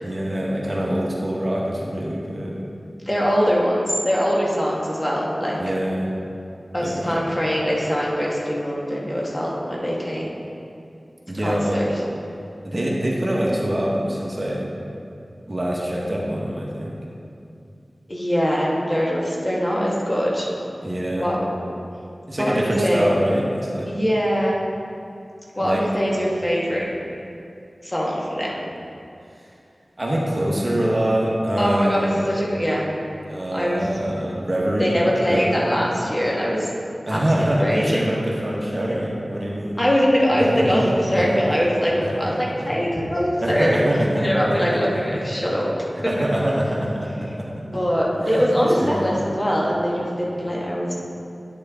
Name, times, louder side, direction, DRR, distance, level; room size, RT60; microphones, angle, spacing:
voice 1, 0.0-2.6 5.6-6.1 6.8-7.2 11.3-11.8 12.6-14.6 15.5-17.0 20.8-21.3 22.3-23.9 25.6-25.8 30.0-32.2 33.2-35.0 35.2-35.7 37.0-39.8 40.5-41.4 42.0-42.1 42.3-42.7 43.4-45.2 46.0-47.6 48.2-49.1, right 1 dB, 40° right, -4 dB, 1.3 m, -25 dB
voice 2, 3.0-5.6 6.7-10.3 11.4-11.9 18.1-20.5 21.2-21.4 22.4-23.1 23.8-24.5 25.5-26.9 27.8-28.6 31.6-32.8 33.5-33.9 34.8-36.7 37.1-38.1 39.8-45.7 46.2-46.3 47.6-50.9, equal, 25° left, -4 dB, 1.5 m, -22 dB
9.9 x 6.4 x 3.7 m, 2.5 s
wide cardioid pair, 65°, 0 cm